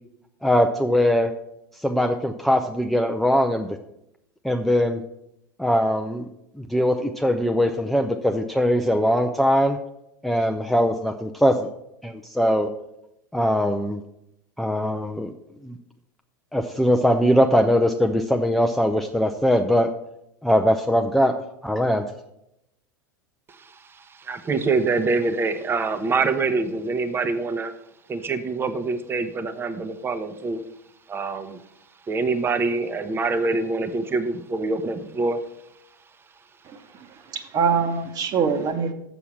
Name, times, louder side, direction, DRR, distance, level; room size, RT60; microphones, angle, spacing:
voice 1, 0.4-1.3 1.8-3.8 4.4-5.0 5.6-6.3 6.6-9.8 10.2-11.7 12.0-12.7 13.3-14.0 14.6-15.3 15.6-15.8 16.5-19.9 20.4-21.3 21.6-22.0, equal, ahead, 5 dB, 0.5 m, -21 dB
voice 2, 23.5-27.7 28.1-30.6 31.1-31.6 32.1-35.4, right 3 dB, 20° right, 10 dB, 0.9 m, -25 dB
voice 3, 36.6-38.9, right 6 dB, 35° right, 8 dB, 1.2 m, -24 dB
7.1 x 7.0 x 6.3 m, 0.81 s
figure-of-eight pair, 85°, 11 cm